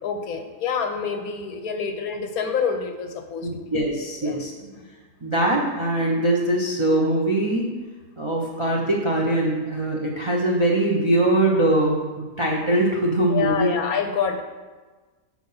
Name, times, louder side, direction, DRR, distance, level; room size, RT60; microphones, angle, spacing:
voice 1, 0.0-3.7 4.2-4.9 13.2-14.4, left 6 dB, 65° left, 6 dB, 1.0 m, -27 dB
voice 2, 3.4-4.5 5.2-7.7 8.2-12.0 12.4-13.7, right 1 dB, 40° right, -2 dB, 0.4 m, -22 dB
7.4 x 4.4 x 5.6 m, 1.3 s
omnidirectional pair, 1.8 m